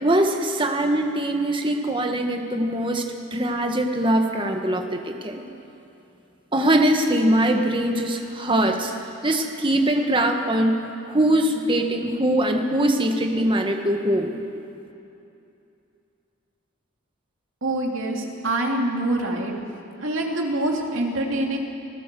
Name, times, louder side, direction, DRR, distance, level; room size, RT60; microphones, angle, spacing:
voice 1, 0.0-3.0 3.3-5.4 6.5-8.9 9.2-10.8 11.1-14.3, right 1 dB, 25° right, 4 dB, 1.5 m, -22 dB
voice 2, 17.6-19.5 20.0-21.6, right 1 dB, 70° right, 0 dB, 2.9 m, -25 dB
25.0 x 15.5 x 7.7 m, 2.7 s
head